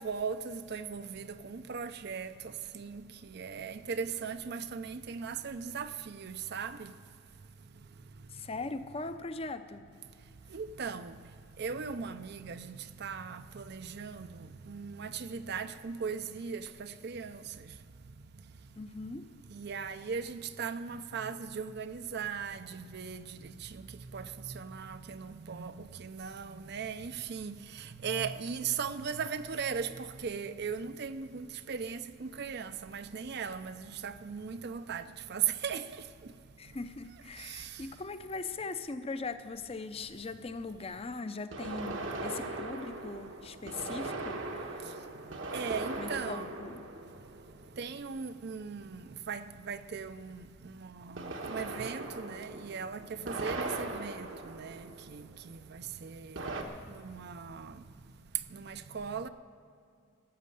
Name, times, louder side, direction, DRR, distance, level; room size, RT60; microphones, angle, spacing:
voice 1, 0.0-2.3 2.7-3.0 3.3-6.9 10.5-11.1 11.6-12.8 13.0-14.3 14.7-17.4 19.5-23.2 24.1-24.2 24.5-27.6 28.0-35.0 35.3-35.8 45.5-46.5 47.8-50.4 51.1-54.8 55.1-55.2 56.0-56.4 57.0-57.7 58.5-59.3, right 6 dB, 55° right, 0.5 m, -38 dB
voice 2, 8.3-9.8 18.8-19.3 36.6-44.5 44.7-44.8 46.0-46.8, left 3 dB, 30° left, 0.6 m, -40 dB
sound 1, 37.6-37.7 41.5-48.0 51.2-55.4 56.4-56.6, right 2 dB, 75° right, 1.3 m, -39 dB
13.5 x 7.5 x 9.7 m
head